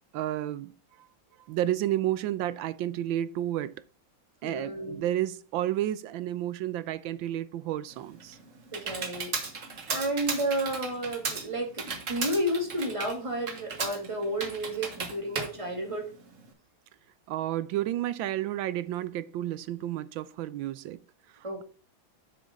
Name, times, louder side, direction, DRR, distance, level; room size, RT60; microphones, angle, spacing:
voice 1, 0.1-0.7 1.0-1.1 1.5-3.7 4.4-8.4 17.3-21.0 21.3-21.6, right 13 dB, 75° right, 1.2 m, -31 dB
voice 2, 4.4-5.0 8.7-9.3 9.9-16.1 21.4-21.6, right 1 dB, 15° right, 2.1 m, -31 dB
Computer keyboard, 7.9-16.5, right 4 dB, 40° right, 1.5 m, -36 dB
7.6 x 6.9 x 3.6 m
omnidirectional pair, 2.3 m